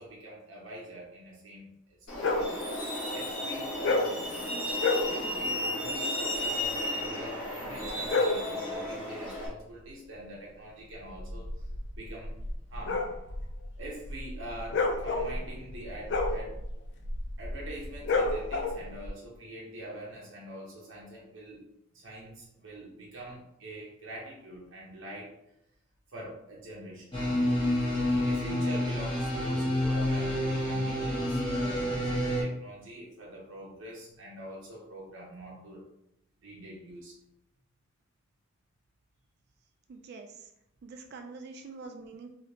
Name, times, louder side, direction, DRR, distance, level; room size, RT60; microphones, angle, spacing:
voice 1, 0.0-2.3 3.1-4.2 5.1-11.5 11.9-12.4 12.7-13.1 13.8-16.6 17.4-21.6 21.9-25.4 26.1-27.2 28.1-35.8 36.4-37.1, right 1 dB, 65° right, -4 dB, 0.7 m, -44 dB
Truck, 2.1-9.5, left 1 dB, 90° left, 1.4 m, -34 dB
sound 1, 2.2-2.5 3.8-4.2 4.7-5.1 7.8-8.5 11.1-19.1, left 3 dB, 55° left, 0.4 m, -30 dB
sound 2, 27.1-32.4, left 1 dB, 25° left, 1.2 m, -28 dB
voice 2, 39.9-40.5 40.8-42.3, right 4 dB, 50° right, 5 dB, 0.3 m, -45 dB
3.2 x 2.8 x 2.7 m, 0.80 s
head